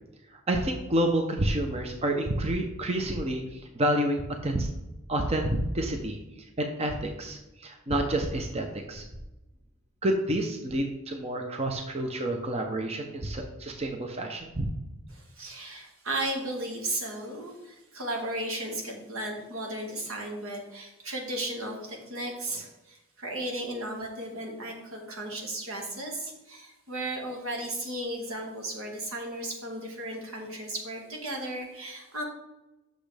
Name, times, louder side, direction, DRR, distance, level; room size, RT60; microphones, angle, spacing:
voice 1, 0.5-4.7 5.1-6.2 6.6-9.0 10.0-14.7, right 1 dB, 30° right, 3 dB, 0.7 m, -29 dB
voice 2, 15.1-32.2, right 1 dB, 80° right, 1 dB, 1.8 m, -35 dB
8.4 x 6.4 x 3.4 m, 1.0 s
head